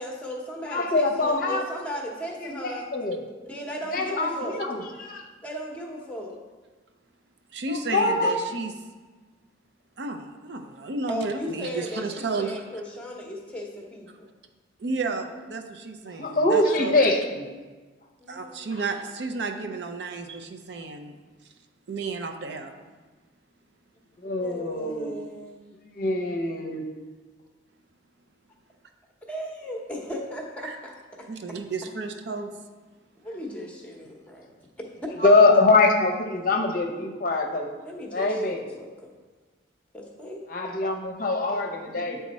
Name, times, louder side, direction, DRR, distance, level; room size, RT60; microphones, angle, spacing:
voice 1, 0.0-2.9 3.4-4.6 5.4-6.4 11.1-14.3 18.2-18.8 24.2-25.6 29.2-31.3 33.2-34.5 34.8-35.4 37.8-38.4 38.8-39.1 39.9-40.5, equal, 5° left, 0 dB, 0.8 m, -36 dB
voice 2, 0.7-1.6 2.4-3.2 3.9-5.3 7.7-8.3 16.2-17.5 24.2-25.3 26.0-26.8 35.2-37.7 38.1-38.7 40.5-42.2, left 2 dB, 45° left, 2 dB, 0.6 m, -23 dB
voice 3, 7.5-8.7 10.0-12.6 14.8-17.0 18.3-21.1 21.9-22.7 30.6-30.7 31.3-32.5, right 3 dB, 65° right, 6 dB, 0.5 m, -32 dB
8.5 x 3.5 x 4.1 m, 1.3 s
head